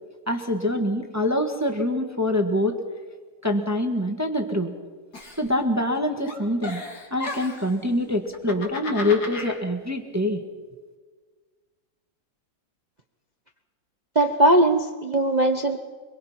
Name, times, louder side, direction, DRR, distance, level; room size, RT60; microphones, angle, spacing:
voice 1, 0.3-2.8 3.4-4.7 5.4-6.8 7.1-10.4, left 1 dB, 10° right, 5 dB, 1.3 m, -25 dB
Giggle, 5.1-6.0 6.3-7.7 8.3-9.6, left 3 dB, 45° left, 2.9 m, -35 dB
voice 2, 14.1-15.8, right 1 dB, 55° right, 6 dB, 0.4 m, -19 dB
24.5 x 22.5 x 5.9 m, 1.5 s
omnidirectional pair, 2.4 m